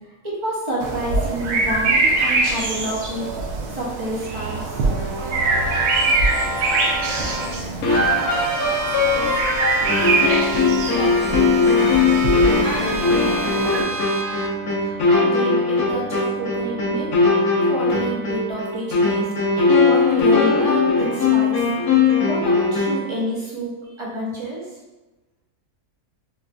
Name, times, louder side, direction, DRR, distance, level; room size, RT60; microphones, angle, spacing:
voice 1, 0.2-3.3 3.7-4.9 14.8-17.4 17.7-19.3 19.5-21.6 22.0-24.6, right 1 dB, 40° right, -6 dB, 0.4 m, -28 dB
sound 1, 0.8-13.8, right 3 dB, 90° right, 1.1 m, -24 dB
sound 2, 4.9-7.5 7.9-14.5, right 3 dB, 70° right, 0.8 m, -29 dB
voice 2, 6.3-9.6 10.2-11.4 12.1-14.1, left 2 dB, 65° left, -4 dB, 0.8 m, -35 dB
sound 3, 7.8-23.1, left 4 dB, 80° left, 1.3 m, -20 dB
4.1 x 2.5 x 2.2 m, 1.1 s
omnidirectional pair, 1.6 m